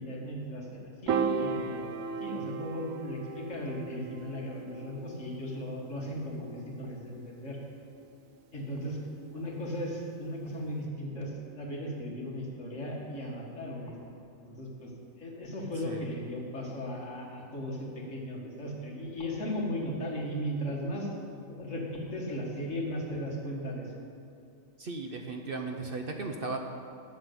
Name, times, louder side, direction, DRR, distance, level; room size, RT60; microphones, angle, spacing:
voice 1, 0.0-7.6 8.5-9.0 9.3-13.9 14.4-14.9 15.2-21.1 21.4-23.9, equal, 65° left, -2 dB, 2.3 m, -37 dB
Piano, 1.1-7.5, right 6 dB, 75° right, 1.1 m, -36 dB
voice 2, 24.8-26.6, right 3 dB, 50° right, 3 dB, 0.8 m, -36 dB
11.5 x 6.6 x 8.1 m, 2.5 s
omnidirectional pair, 1.4 m